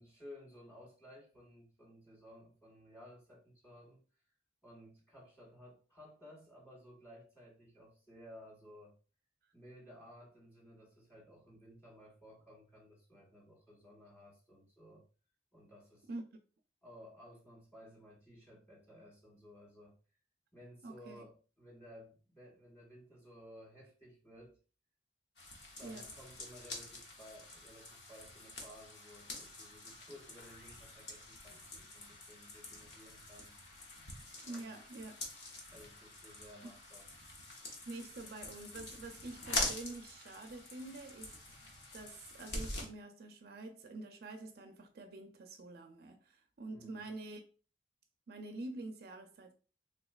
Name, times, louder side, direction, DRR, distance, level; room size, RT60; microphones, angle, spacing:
voice 1, 0.0-4.0 4.6-9.0 9.5-15.1 15.5-16.1 16.8-20.0 20.5-24.6 25.8-33.6 34.4-34.7 35.7-37.1 46.7-47.1, equal, 15° left, 1.5 m, -56 dB
voice 2, 20.8-21.2 25.8-26.1 34.4-35.2 37.9-47.4 48.3-49.5, right 2 dB, 55° right, 0.4 m, -47 dB
sound 1, 25.4-42.9, left 2 dB, 65° left, 0.9 m, -45 dB
3.4 x 3.0 x 2.3 m
head